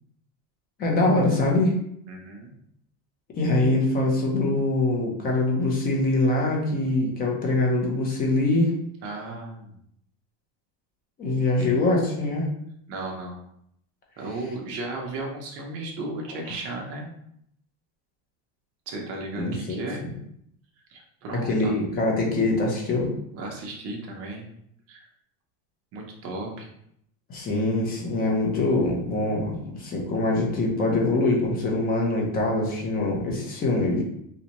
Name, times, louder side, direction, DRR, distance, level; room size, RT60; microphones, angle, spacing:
voice 1, 0.8-1.7 3.3-8.7 11.2-12.5 19.4-20.1 21.3-23.1 27.3-34.0, left 2 dB, 25° left, -1 dB, 0.6 m, -24 dB
voice 2, 2.1-2.5 9.0-9.8 11.3-11.9 12.9-13.4 14.2-17.1 18.9-20.1 20.9-21.7 23.3-24.5 24.9-25.1 25.9-26.7, right 2 dB, 35° right, 0 dB, 0.7 m, -35 dB
3.9 x 2.2 x 2.9 m, 0.73 s
cardioid pair, 165°, 39 cm